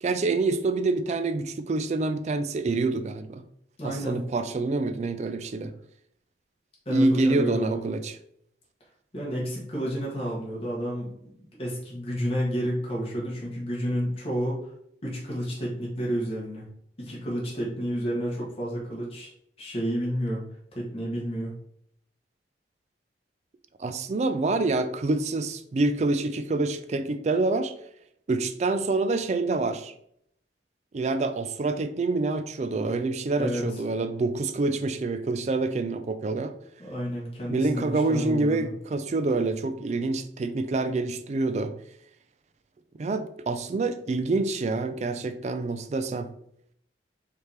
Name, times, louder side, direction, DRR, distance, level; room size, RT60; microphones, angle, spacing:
voice 1, 0.0-3.4 3.8-5.7 6.9-8.2 23.8-27.7 28.3-29.9 30.9-36.5 37.5-41.7 43.0-46.3, right 3 dB, 40° right, 10 dB, 0.3 m, -27 dB
voice 2, 3.8-4.2 6.8-7.9 9.1-11.3 11.6-14.6 15.0-16.6 17.0-19.3 19.6-20.4 20.7-21.5 33.4-33.8 36.8-38.7, equal, 35° left, -4 dB, 1.2 m, -30 dB
4.8 x 2.9 x 3.2 m, 0.72 s
head